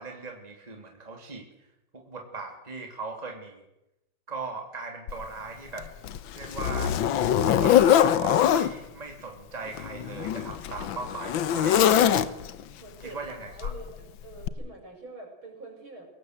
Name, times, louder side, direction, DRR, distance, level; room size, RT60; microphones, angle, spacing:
voice 1, 0.0-1.5 1.9-3.7 4.3-5.9 6.3-6.9 7.5-12.3 13.0-13.7, right 3 dB, 20° right, 3 dB, 2.8 m, -39 dB
Zipper (clothing), 5.1-5.2 5.8-8.7 9.7-12.6 13.6-13.8 14.4-14.5, left 10 dB, 70° left, 1.7 m, -23 dB
voice 2, 12.8-16.1, right 2 dB, 75° right, 2 dB, 6.8 m, -45 dB
22.0 x 18.5 x 7.9 m, 0.91 s
omnidirectional pair, 2.3 m